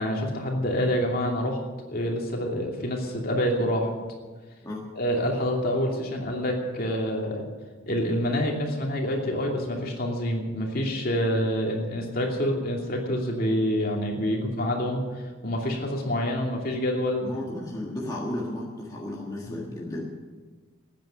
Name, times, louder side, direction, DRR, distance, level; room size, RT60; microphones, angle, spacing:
voice 1, 0.0-1.6 1.9-3.9 4.9-7.5 7.9-17.2 19.5-19.6, equal, 45° left, 0 dB, 2.8 m, -27 dB
voice 2, 17.2-20.1, left 1 dB, 15° left, -3 dB, 1.6 m, -33 dB
14.0 x 9.5 x 9.0 m, 1.3 s
head